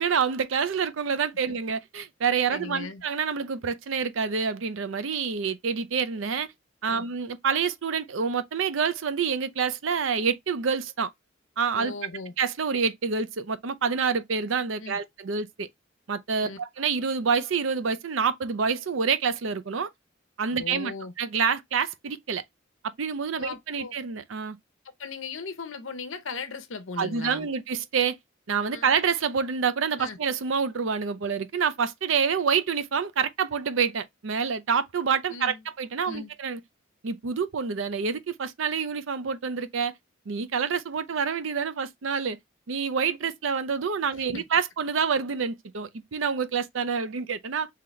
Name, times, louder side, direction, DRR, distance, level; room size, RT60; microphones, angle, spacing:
voice 1, 0.0-6.5 6.8-11.1 11.6-11.9 12.4-15.7 16.1-19.9 20.4-22.4 23.0-24.6 27.0-28.2 28.5-36.6 37.0-39.9 40.3-42.4 42.7-47.7, right 6 dB, 70° right, 0.5 m, -27 dB
voice 2, 2.5-3.0 6.9-7.0 11.7-12.3 14.8-15.0 16.4-16.6 20.5-21.1 23.3-23.9 25.0-27.5 28.7-28.9 30.0-30.2 35.3-35.6 36.1-36.3 44.3-44.4, left 4 dB, 70° left, 0.8 m, -37 dB
3.9 x 2.9 x 3.1 m
head